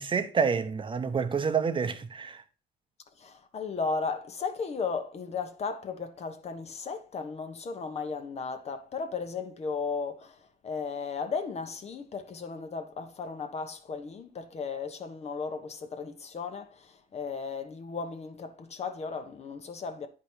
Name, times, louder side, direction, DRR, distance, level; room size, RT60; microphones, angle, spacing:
voice 1, 0.0-2.4, right 6 dB, 30° right, 0.9 m, -28 dB
voice 2, 3.2-20.1, left 5 dB, 40° left, 1.2 m, -35 dB
9.4 x 5.1 x 4.5 m
cardioid pair, 110°, 17 cm